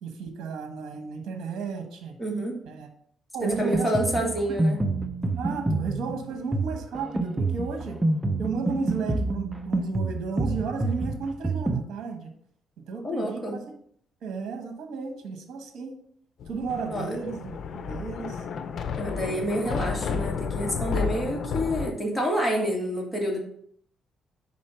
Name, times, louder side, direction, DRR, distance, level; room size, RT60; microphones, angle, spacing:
voice 1, 0.0-2.1 2.6-2.9 3.3-4.6 5.4-8.0 8.4-12.3 12.9-13.6 14.2-16.0 16.5-18.5 21.0-21.2, right 4 dB, 75° right, 5 dB, 1.1 m, -33 dB
voice 2, 2.2-2.6 3.4-4.8 13.0-13.6 16.9-17.1 19.0-23.4, equal, 5° left, -2 dB, 1.8 m, -28 dB
Drum kit, 3.5-11.8, right 2 dB, 10° right, 0.7 m, -28 dB
Thunder, 16.4-21.9, left 6 dB, 60° left, 0.6 m, -31 dB
5.1 x 4.4 x 5.5 m, 0.65 s
cardioid pair, 90°, 0 cm